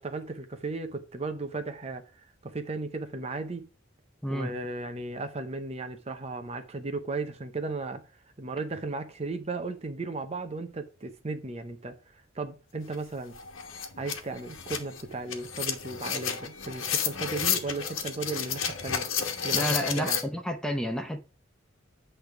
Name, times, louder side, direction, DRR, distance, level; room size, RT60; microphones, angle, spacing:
voice 1, 0.0-2.0 2.4-3.7 4.3-8.0 8.4-13.4 14.0-19.1 19.4-20.2, right 3 dB, 30° right, 0.7 m, -35 dB
sound 1, 12.9-13.0 13.3-20.2, left 7 dB, 85° left, 1.2 m, -31 dB
voice 2, 19.5-21.2, equal, 5° left, 0.6 m, -30 dB
8.5 x 3.4 x 5.8 m
head